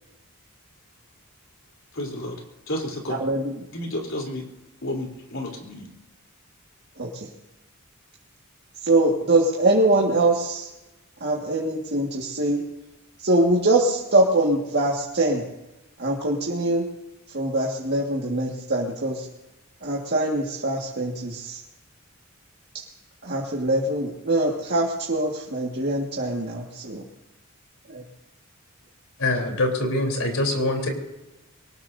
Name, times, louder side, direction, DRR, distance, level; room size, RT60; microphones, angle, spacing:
voice 1, 1.9-2.4 2.7-3.2 3.7-4.5 4.8-5.9, left 1 dB, 65° left, 0 dB, 3.9 m, -31 dB
voice 2, 3.2-3.6 7.0-7.3 8.8-10.7 11.2-12.6 13.2-15.4 16.0-16.8 17.3-19.3 19.8-21.6 22.7-22.8 23.2-27.0 27.9-28.0, right 2 dB, 55° right, -3 dB, 1.9 m, -23 dB
voice 3, 29.2-30.9, left 2 dB, 85° left, 2 dB, 3.8 m, -24 dB
23.0 x 19.5 x 2.8 m, 1.0 s
head